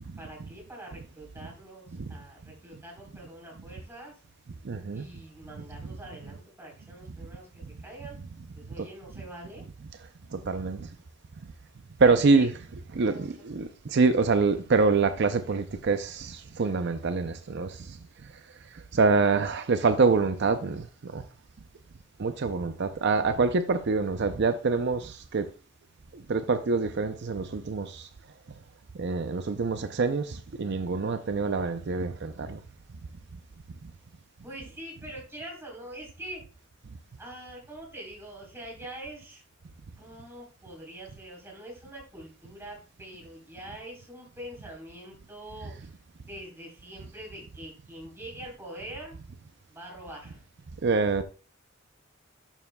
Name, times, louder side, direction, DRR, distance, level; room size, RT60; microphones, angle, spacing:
voice 1, 0.2-4.1 4.9-8.2 8.5-9.6 12.0-12.5 13.1-13.3 34.4-36.4 37.2-39.4 40.0-45.9 46.2-49.2 49.7-50.4, right 1 dB, 10° right, 3.7 m, -44 dB
voice 2, 4.7-5.0 8.8-8.9 10.3-10.9 12.0-12.5 12.9-17.7 18.9-20.8 21.1-21.2 22.2-25.4 26.3-28.1 29.0-32.6 50.8-51.2, right 4 dB, 55° right, 0.5 m, -25 dB
11.0 x 7.0 x 2.2 m
head